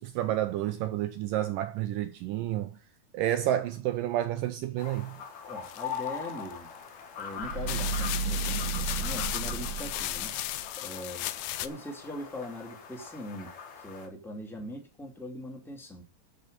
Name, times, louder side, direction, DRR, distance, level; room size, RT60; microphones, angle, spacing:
voice 1, 0.0-2.7 3.1-5.1, right 12 dB, 80° right, 2.1 m, -30 dB
sound 1, 4.8-14.1, left 7 dB, 60° left, 3.0 m, -42 dB
voice 2, 5.5-6.7 7.2-10.3 10.8-11.3 11.6-16.0, left 1 dB, ahead, 1.7 m, -41 dB
sound 2, 5.6-6.5 7.2-7.3 7.7-11.7, left 15 dB, 85° left, 2.6 m, -35 dB
sound 3, 7.3-10.6, right 5 dB, 60° right, 1.8 m, -33 dB
12.0 x 5.2 x 6.7 m
omnidirectional pair, 4.3 m